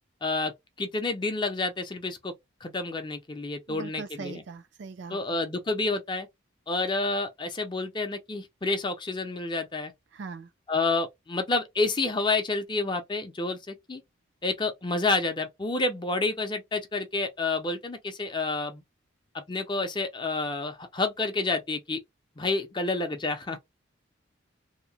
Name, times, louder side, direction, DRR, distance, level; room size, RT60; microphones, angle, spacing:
voice 1, 0.2-0.5 0.8-2.3 2.6-4.4 5.1-6.3 6.7-9.9 10.7-14.0 14.4-18.8 19.3-22.0 22.4-23.6, left 3 dB, 25° left, 0.5 m, -29 dB
voice 2, 3.7-5.2 10.1-10.5, right 4 dB, 60° right, 0.4 m, -40 dB
2.8 x 2.1 x 2.7 m
head